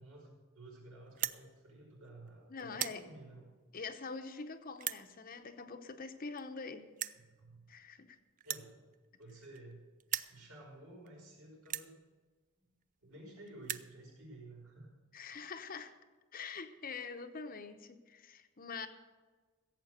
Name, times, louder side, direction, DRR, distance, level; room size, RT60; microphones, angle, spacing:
voice 1, 0.0-3.5 7.1-7.7 8.4-8.9 9.2-9.8 10.3-12.0 13.0-14.9, right 2 dB, 90° right, -2 dB, 5.4 m, -53 dB
sound 1, 1.1-1.4 2.1-2.3 2.6-3.0 3.8-3.9 4.8-5.0 6.1-6.2 6.4-6.5 7.0-7.2 8.4-9.7 10.0-10.4 11.1-11.2 11.6-11.9 12.8-12.9 13.1-13.2 13.5-13.9, right 12 dB, 40° right, 0.4 m, -38 dB
voice 2, 2.5-3.0 3.7-6.9 7.7-8.2 15.1-16.0 16.3-18.9, left 4 dB, 40° left, 8 dB, 0.8 m, -45 dB
16.0 x 7.8 x 6.6 m, 1.3 s
head